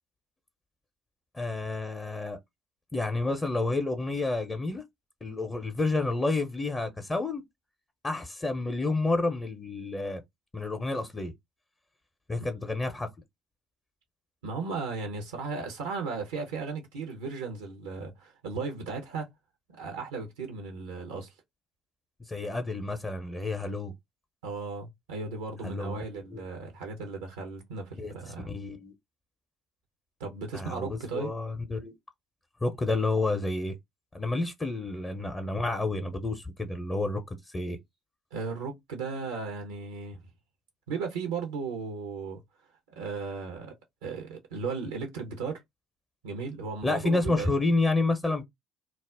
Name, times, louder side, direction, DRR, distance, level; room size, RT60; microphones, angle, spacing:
voice 1, 1.3-2.4 2.9-4.8 5.2-7.4 8.0-10.2 10.5-11.3 12.3-13.1 22.3-23.9 25.6-26.0 26.3-26.4 28.0-28.1 28.4-28.9 30.5-31.9 32.6-33.7 34.1-37.2 37.5-37.8 46.8-48.4, left 2 dB, 25° left, 0.6 m, -29 dB
voice 2, 14.4-19.3 19.7-21.3 24.4-28.5 30.2-31.3 38.3-40.2 40.9-42.4 42.9-43.7 44.0-45.6 46.2-47.5, right 4 dB, 80° right, 0.6 m, -36 dB
2.3 x 2.0 x 3.4 m
hypercardioid pair, 55°, 0 cm